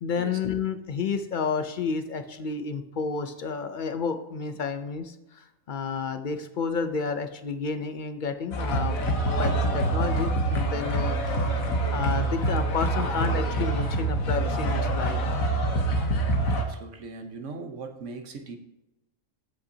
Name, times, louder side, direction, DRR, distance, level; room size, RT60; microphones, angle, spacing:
voice 1, 0.0-8.9 9.4-11.2 11.6-15.2, left 5 dB, 60° left, 8 dB, 0.5 m, -31 dB
sound 1, 8.5-16.6, right 1 dB, 80° left, 1.5 m, -26 dB
voice 2, 16.5-18.6, right 4 dB, 65° right, 5 dB, 1.3 m, -39 dB
14.5 x 5.4 x 2.8 m, 0.91 s
omnidirectional pair, 1.4 m